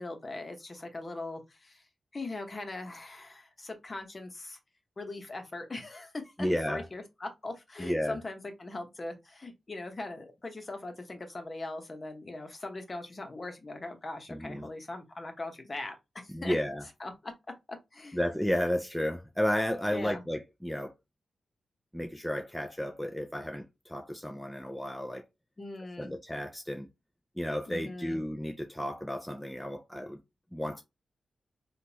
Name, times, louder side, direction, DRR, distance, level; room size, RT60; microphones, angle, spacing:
voice 1, 0.0-1.8 2.1-4.6 5.0-16.6 17.0-17.3 17.9-18.2 19.9-20.2 25.6-26.1 27.7-28.2, left 2 dB, 40° left, 1.1 m, -40 dB
voice 2, 6.4-6.9 7.8-8.2 14.3-14.7 16.3-16.9 18.1-20.9 21.9-25.2 26.0-26.9 27.4-30.2 30.5-30.8, equal, 5° left, 0.5 m, -32 dB
3.6 x 2.5 x 2.8 m
cardioid pair, 50°, 0 cm